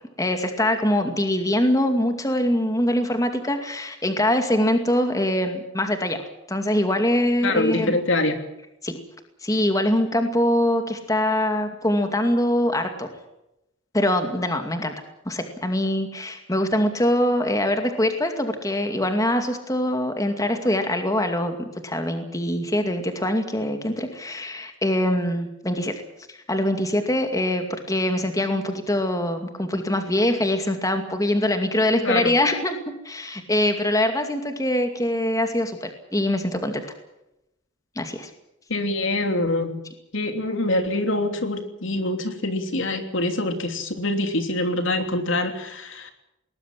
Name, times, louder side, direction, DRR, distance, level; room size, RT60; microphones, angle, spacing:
voice 1, 0.0-6.2 6.5-7.9 8.8-9.0 9.4-13.1 13.9-14.9 15.3-25.9 26.3-32.8 33.0-36.8 38.0-38.3, left 1 dB, 15° left, 6 dB, 2.3 m, -23 dB
voice 2, 7.4-8.4 32.0-32.3 38.7-39.8 40.1-46.1, left 2 dB, 65° left, 7 dB, 3.2 m, -25 dB
21.0 x 20.0 x 7.5 m, 0.87 s
head